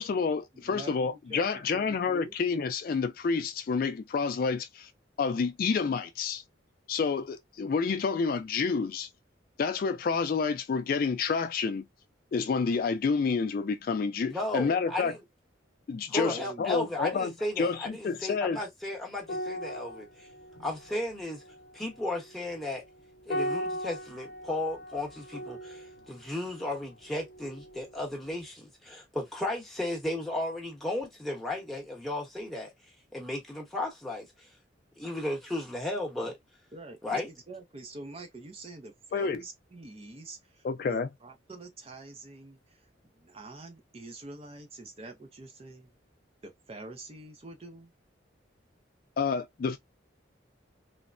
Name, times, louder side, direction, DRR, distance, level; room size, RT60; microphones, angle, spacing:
voice 1, 0.0-4.9 5.2-6.4 6.9-9.1 9.6-11.9 12.3-15.1 15.9-18.6 39.1-39.4 40.6-41.1 49.2-49.8, left 5 dB, 50° left, 0.3 m, -29 dB
voice 2, 0.5-1.5 1.7-2.3 16.3-16.9 36.2-36.3 36.7-45.9 46.4-47.9, right 2 dB, 30° right, 0.5 m, -46 dB
voice 3, 14.3-15.2 16.1-20.3 20.6-21.4 21.7-22.8 23.3-32.7 33.1-34.5 35.0-36.4 37.0-37.3, left 1 dB, ahead, 0.9 m, -35 dB
sound 1, 19.2-28.0 28.2-28.5, equal, 70° left, 0.7 m, -39 dB
3.2 x 2.1 x 2.4 m
head